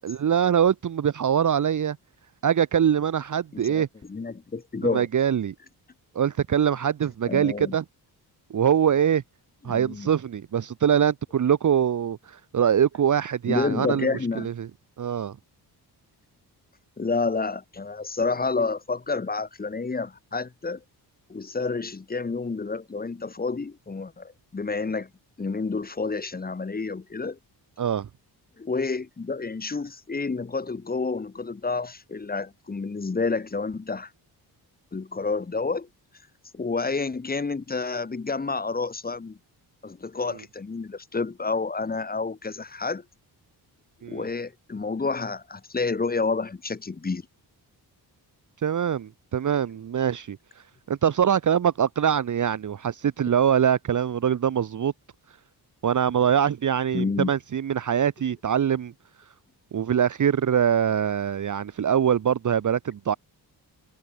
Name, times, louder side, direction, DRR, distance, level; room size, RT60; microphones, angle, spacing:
voice 1, 0.0-2.0 2.4-3.9 4.9-5.5 6.1-7.8 8.5-9.2 9.6-14.1 14.4-14.7 15.0-15.3 27.8-28.1 44.0-44.2 48.6-50.4 50.9-54.9 55.8-58.9 59.7-63.1, right 8 dB, 45° right, 1.1 m, -23 dB
voice 2, 3.5-5.1 7.3-7.8 9.6-10.1 13.5-14.5 17.0-20.8 21.3-25.1 25.4-27.4 28.6-34.1 34.9-35.9 36.5-39.4 39.8-43.0 44.1-47.2 56.9-57.3, left 4 dB, 20° left, 1.4 m, -29 dB
wide cardioid pair, 130°, 40 cm